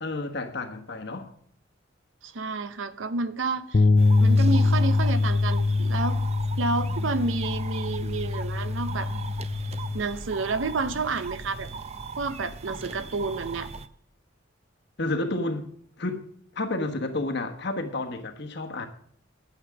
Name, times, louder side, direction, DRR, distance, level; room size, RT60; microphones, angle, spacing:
voice 1, 0.0-1.3 15.0-15.7 16.0-18.9, left 2 dB, 65° left, 1.3 m, -31 dB
voice 2, 2.2-3.8 4.2-6.2 6.6-9.1 9.9-11.7 12.2-13.7, right 3 dB, 85° right, 0.8 m, -30 dB
sound 1, 3.7-10.0, left 3 dB, 35° left, 0.4 m, -23 dB
sound 2, 4.0-13.9, right 4 dB, 35° right, 0.5 m, -39 dB
8.9 x 8.0 x 5.9 m
head